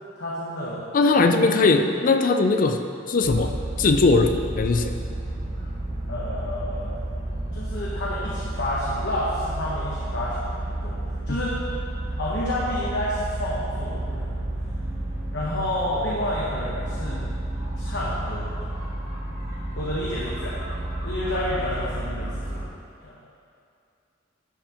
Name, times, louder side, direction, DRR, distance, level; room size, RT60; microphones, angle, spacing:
voice 1, 0.1-0.9 1.3-1.7 6.1-6.9 7.5-11.0 11.3-11.6 12.1-14.3 15.3-17.3 17.8-18.5 19.8-22.6 23.0-23.1, left 1 dB, 70° left, -6 dB, 1.0 m, -30 dB
voice 2, 0.9-3.5 3.8-5.0 11.3-11.4, left 3 dB, 45° left, 6 dB, 0.4 m, -20 dB
sound 1, 3.2-22.7, right 1 dB, 40° right, 1.8 m, -31 dB
11.0 x 5.5 x 3.0 m, 2.4 s
head